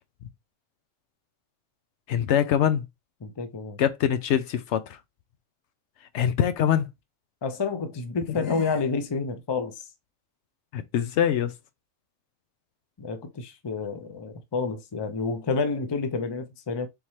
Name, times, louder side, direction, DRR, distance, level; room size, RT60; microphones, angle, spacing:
voice 1, 2.1-2.9 3.8-5.0 6.1-6.9 8.4-8.6 10.7-11.5, left 9 dB, 70° left, 0.8 m, -24 dB
voice 2, 3.2-3.8 7.4-9.7 13.0-16.9, left 4 dB, 30° left, 0.5 m, -29 dB
4.2 x 3.6 x 3.1 m
omnidirectional pair, 1.3 m